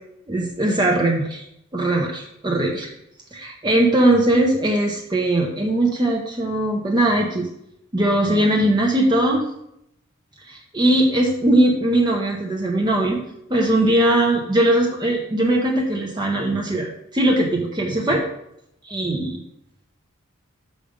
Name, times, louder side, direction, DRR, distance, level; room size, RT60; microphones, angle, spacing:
voice 1, 0.3-1.4 1.7-2.9 3.3-7.5 7.9-9.4 10.5-13.2 13.5-16.9 17.1-18.2 18.9-19.4, right 1 dB, 20° right, -1 dB, 0.9 m, -20 dB
6.6 x 5.2 x 5.2 m, 0.78 s
head